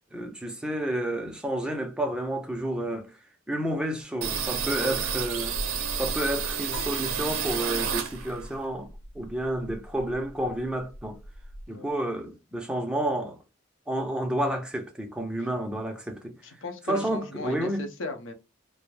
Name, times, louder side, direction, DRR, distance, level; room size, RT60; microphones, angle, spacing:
voice 1, 0.1-3.2 3.5-5.6 6.0-8.9 9.1-11.2 11.7-13.4 13.9-16.4 16.9-17.8, right 1 dB, 5° right, 0.4 m, -30 dB
sound 1, 4.2-8.6 8.9-10.3 10.6-10.7 10.9-11.6, right 6 dB, 85° right, 0.5 m, -31 dB
sound 2, 6.7-8.1, left 1 dB, 40° left, 0.7 m, -44 dB
voice 2, 16.4-18.3, left 2 dB, 75° left, 0.6 m, -37 dB
2.3 x 2.0 x 3.1 m
head